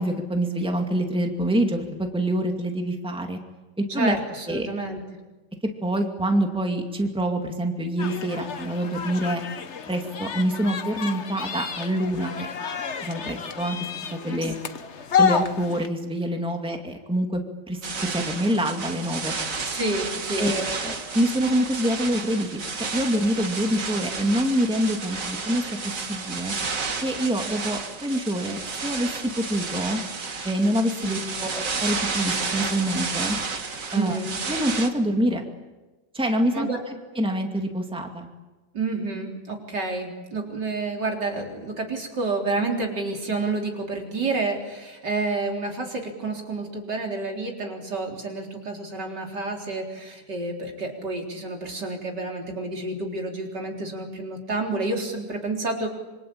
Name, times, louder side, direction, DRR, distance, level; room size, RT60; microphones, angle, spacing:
voice 1, 0.0-3.4 3.8-4.2 4.5-4.7 5.8-9.4 9.9-12.5 13.0-13.8 14.1-14.5 15.2-17.4 17.7-19.3 20.4-25.6 26.1-26.5 27.0-29.1 29.4-30.0 30.4-33.4 33.9-34.2 34.5-35.4 36.1-36.7 37.2-38.3, right 1 dB, 5° right, 3 dB, 2.3 m, -26 dB
voice 2, 3.9-5.0 14.2-14.4 19.6-20.5 31.0-31.5 33.8-34.3 36.5-36.8 38.7-55.9, right 3 dB, 70° right, 1 dB, 4.6 m, -29 dB
sound 1, 8.0-15.9, left 6 dB, 45° left, 1.3 m, -29 dB
sound 2, 17.8-34.9, right 4 dB, 50° right, 2.2 m, -31 dB
26.5 x 25.5 x 8.7 m, 1.2 s
omnidirectional pair, 1.9 m